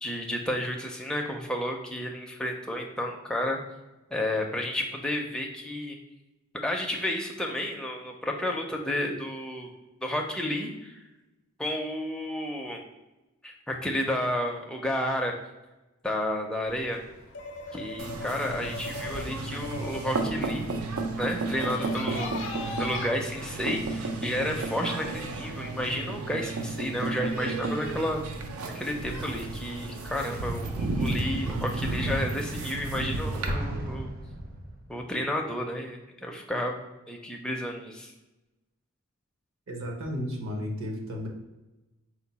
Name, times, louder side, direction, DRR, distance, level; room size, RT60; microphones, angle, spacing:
voice 1, 0.0-3.6 4.1-6.0 6.6-9.7 10.0-11.0 11.6-12.8 13.4-15.3 16.0-17.0 17.7-20.7 21.2-28.2 28.7-34.1 34.9-36.8 37.1-38.1, left 1 dB, 5° left, 0 dB, 0.4 m, -31 dB
sound 1, 16.7-23.1, left 3 dB, 60° left, 0.5 m, -39 dB
sound 2, 18.0-33.5, right 2 dB, 90° right, 0.5 m, -33 dB
Explosion, 33.5-35.1, equal, 45° right, 0.6 m, -35 dB
voice 2, 39.7-41.3, equal, 65° right, 1 dB, 0.9 m, -33 dB
4.5 x 2.2 x 4.0 m, 1.0 s
head